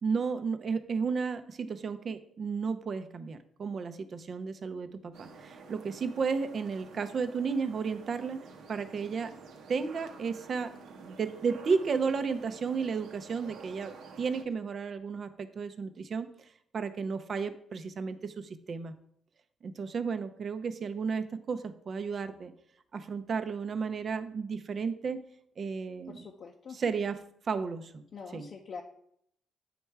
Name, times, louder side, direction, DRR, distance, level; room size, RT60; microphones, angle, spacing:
voice 1, 0.0-8.4 8.7-9.3 9.7-10.7 11.0-16.3 16.7-18.9 19.6-22.5 22.9-25.2 25.6-26.2 26.8-27.2 27.5-28.0 28.3-28.5, right 5 dB, 50° right, 10 dB, 0.6 m, -33 dB
sound 1, 5.1-14.4, right 4 dB, 80° right, 0.8 m, -50 dB
voice 2, 26.1-26.8 28.1-28.8, left 5 dB, 55° left, 1 dB, 0.6 m, -44 dB
8.9 x 3.3 x 4.6 m, 0.69 s
cardioid pair, 90°, 0 cm